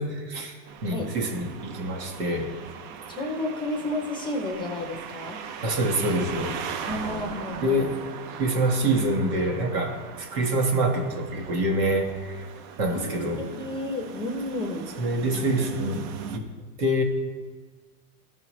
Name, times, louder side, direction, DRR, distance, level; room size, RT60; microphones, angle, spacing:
voice 1, 0.0-2.5 5.6-6.6 7.6-7.9 8.4-12.4 12.8-13.4 15.0-16.1 16.3-16.5 16.8-17.0, right 1 dB, 90° right, 2 dB, 1.7 m, -26 dB
sound 1, 0.7-16.4, right 7 dB, 35° right, 0.4 m, -39 dB
voice 2, 3.1-5.4 6.9-7.9 12.9-14.9, left 2 dB, 10° left, 3 dB, 0.6 m, -32 dB
13.5 x 5.6 x 3.1 m, 1.4 s
supercardioid pair, 140°, 46 cm